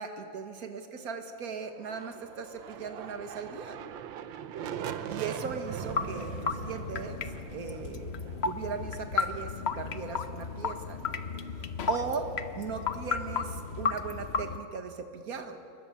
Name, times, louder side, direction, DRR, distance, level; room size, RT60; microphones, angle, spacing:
voice 1, 0.0-3.8 5.1-7.2 7.5-8.1 8.4-11.2 11.6-15.6, right 5 dB, 45° right, 6 dB, 2.1 m, -38 dB
sound 1, 1.7-9.4, right 9 dB, 70° right, 1.6 m, -41 dB
sound 2, 5.8-14.6, left 5 dB, 45° left, 0.9 m, -34 dB
28.0 x 22.0 x 7.0 m, 2.3 s
omnidirectional pair, 2.2 m